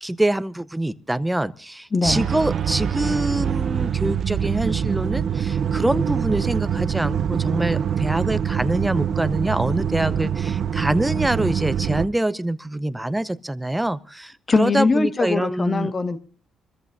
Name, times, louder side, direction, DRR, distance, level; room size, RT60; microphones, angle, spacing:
voice 1, 0.0-15.9, right 1 dB, 10° right, 0.6 m, -25 dB
voice 2, 1.9-2.2 14.5-16.2, left 4 dB, 35° left, 1.5 m, -21 dB
sound 1, 2.0-12.1, right 8 dB, 60° right, 0.6 m, -24 dB
27.5 x 14.0 x 2.6 m
cardioid pair, 90°, 0 cm